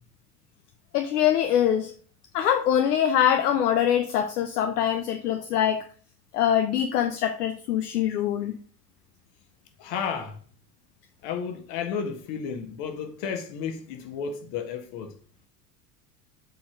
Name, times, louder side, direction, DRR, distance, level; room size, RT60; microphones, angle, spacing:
voice 1, 0.9-1.9 2.3-5.9 6.3-8.6, left 10 dB, 75° left, 0.9 m, -23 dB
voice 2, 9.8-10.4 11.2-15.1, left 6 dB, 55° left, 1.7 m, -32 dB
7.5 x 4.4 x 5.1 m
hypercardioid pair, 75°, 47 cm